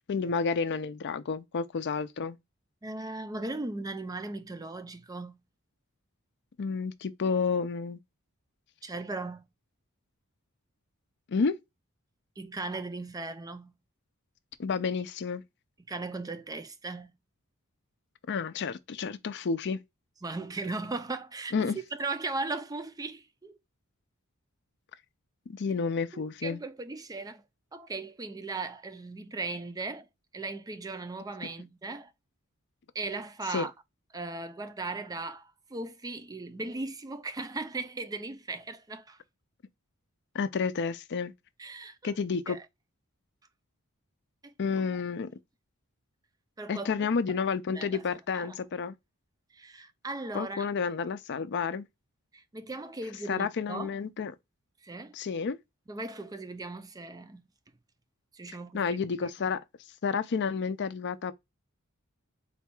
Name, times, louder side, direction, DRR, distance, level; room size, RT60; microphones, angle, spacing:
voice 1, 0.1-2.4 6.6-8.0 11.3-11.6 14.6-15.4 18.3-19.8 21.5-21.8 25.5-26.6 33.5-33.7 40.3-41.3 42.0-42.6 44.6-45.3 46.7-49.0 50.3-51.8 53.3-54.3 55.1-55.6 58.7-59.6 60.0-61.3, left 5 dB, 50° left, 0.5 m, -30 dB
voice 2, 2.8-5.4 8.8-9.5 12.4-13.7 15.8-17.1 20.2-21.5 21.9-23.6 26.1-27.4 27.7-30.1 30.3-32.1 32.9-33.7 34.1-39.2 41.6-42.1 42.5-42.6 44.4-44.5 46.6-47.4 47.7-48.0 48.3-48.5 49.5-50.6 52.3-53.9 54.8-55.1 55.9-57.4 58.3-58.9, right 3 dB, 15° right, 0.4 m, -37 dB
4.1 x 2.3 x 4.3 m
head